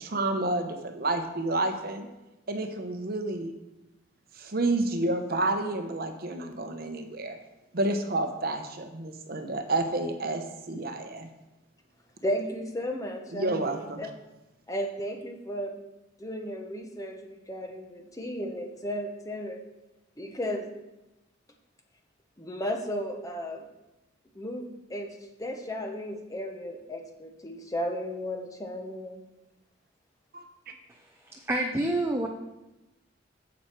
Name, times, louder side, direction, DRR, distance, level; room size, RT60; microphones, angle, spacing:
voice 1, 0.0-2.1 2.5-3.5 4.3-7.4 7.7-11.3 13.3-14.0 30.3-30.7, right 2 dB, 50° right, 6 dB, 0.9 m, -30 dB
voice 2, 12.2-14.1 14.7-15.8 16.2-19.6 20.2-20.7 22.4-23.6 24.3-25.1 25.4-29.2, equal, 15° left, 3 dB, 1.0 m, -34 dB
voice 3, 31.5-32.3, right 1 dB, 15° right, 1 dB, 0.6 m, -27 dB
9.0 x 7.4 x 4.5 m, 0.99 s
head